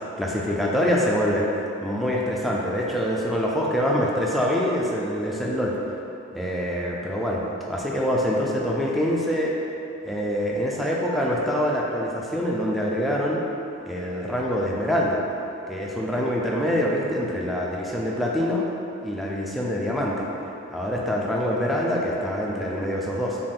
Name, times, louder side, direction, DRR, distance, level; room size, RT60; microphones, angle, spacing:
voice 1, 0.2-1.5 1.8-5.8 6.3-9.6 10.0-13.4 13.9-15.2 15.7-18.7 19.0-20.3 20.7-23.4, equal, ahead, -4 dB, 0.4 m, -25 dB
5.4 x 2.5 x 3.4 m, 2.8 s
head